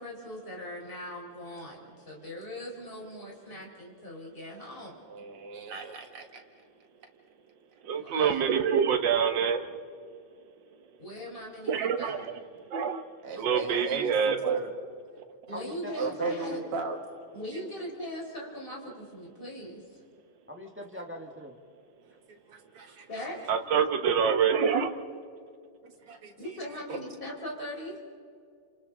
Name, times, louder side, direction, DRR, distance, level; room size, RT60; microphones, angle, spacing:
voice 1, 0.0-4.9 7.9-8.5 11.0-12.3 15.5-16.6 17.3-20.0 23.1-23.4 26.4-28.0, left 1 dB, 25° left, -2 dB, 4.6 m, -40 dB
voice 2, 5.1-6.4 13.2-14.7 16.0-17.0 22.5-23.1 25.8-26.3 26.9-27.0, right 4 dB, 85° right, 4 dB, 2.7 m, -35 dB
voice 3, 7.8-9.8 11.7-12.2 12.7-13.0 13.4-14.6 23.5-25.0, right 7 dB, 60° right, 6 dB, 1.7 m, -26 dB
voice 4, 15.5-16.4 20.5-21.6, left 1 dB, 5° right, 2 dB, 1.1 m, -41 dB
30.0 x 27.0 x 3.8 m, 2.4 s
omnidirectional pair, 2.4 m